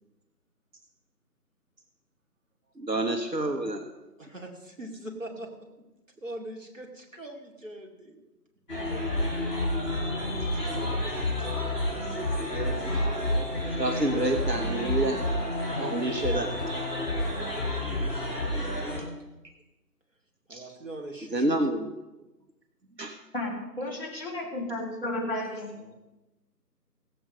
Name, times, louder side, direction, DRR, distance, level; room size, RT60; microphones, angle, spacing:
voice 1, 2.8-3.9 8.9-9.1 12.4-12.8 13.8-15.2 15.8-16.5 20.5-20.6 21.3-21.9 23.0-23.2, right 1 dB, 80° right, 5 dB, 1.4 m, -28 dB
voice 2, 4.2-5.7 6.2-8.3 18.6-19.2 20.5-21.8 25.7-25.9, right 1 dB, 50° right, 0 dB, 2.4 m, -42 dB
sound 1, 8.7-19.0, left 1 dB, 10° left, 3.8 m, -29 dB
voice 3, 23.3-25.9, left 1 dB, 35° left, -5 dB, 3.1 m, -33 dB
17.0 x 8.0 x 5.3 m, 1.0 s
figure-of-eight pair, 170°, 50 cm